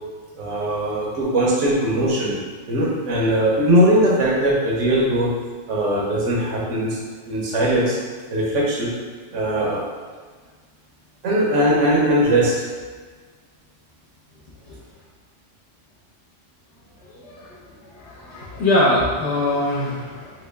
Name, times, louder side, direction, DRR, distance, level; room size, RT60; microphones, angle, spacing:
voice 1, 0.3-2.3 2.7-5.3 5.7-7.0 7.3-8.0 8.3-8.9 9.3-9.8 11.2-12.7, right 1 dB, 80° right, -4 dB, 1.1 m, -20 dB
voice 2, 17.1-17.6 17.9-20.3, left 1 dB, 65° left, -6 dB, 0.9 m, -22 dB
3.0 x 2.9 x 3.3 m, 1.5 s
omnidirectional pair, 1.3 m